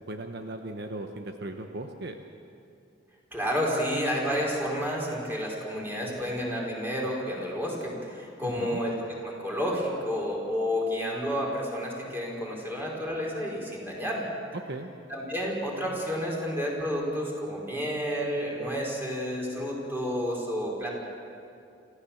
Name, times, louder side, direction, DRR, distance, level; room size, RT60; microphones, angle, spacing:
voice 1, 0.1-2.2 8.4-8.8 14.7-14.9, right 2 dB, 60° right, 5 dB, 1.1 m, -37 dB
voice 2, 3.3-14.3 15.1-20.9, equal, 10° right, -3 dB, 4.5 m, -30 dB
28.0 x 15.0 x 7.2 m, 2.5 s
head